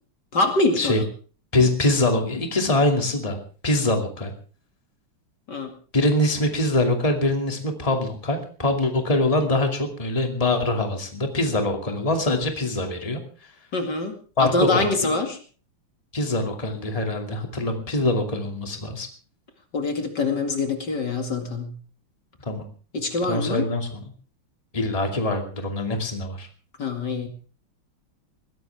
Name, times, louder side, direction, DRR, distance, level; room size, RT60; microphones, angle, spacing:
voice 1, 0.3-1.0 5.5-5.7 13.7-14.1 14.4-15.4 19.7-21.7 22.9-23.7 26.8-27.3, left 3 dB, 55° left, 5 dB, 2.7 m, -24 dB
voice 2, 1.5-3.4 3.6-4.3 5.9-13.2 14.4-15.1 16.1-19.1 22.4-22.7 23.3-24.0 24.7-26.5, left 2 dB, 15° left, 4 dB, 2.5 m, -23 dB
21.0 x 16.5 x 3.5 m, 0.39 s
omnidirectional pair, 2.2 m